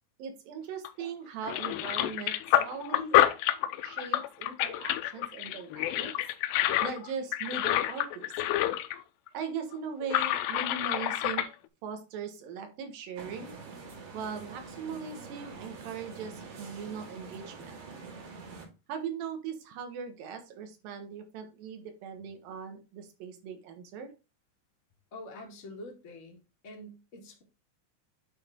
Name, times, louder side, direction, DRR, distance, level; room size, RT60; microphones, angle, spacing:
voice 1, 0.2-3.2 3.8-6.1 6.8-8.3 9.3-11.5 11.8-13.5 14.1-17.8 18.9-24.1, right 6 dB, 65° right, 6 dB, 2.9 m, -39 dB
sound 1, 0.8-1.1 1.4-9.0 9.3-9.4 10.0-11.5, left 13 dB, 85° left, 2.7 m, -28 dB
sound 2, 13.2-18.7, right 4 dB, 85° right, 4.8 m, -45 dB
voice 2, 25.1-26.4 26.6-27.4, left 1 dB, 50° left, 0 dB, 0.8 m, -45 dB
9.7 x 4.3 x 3.7 m, 0.30 s
omnidirectional pair, 4.9 m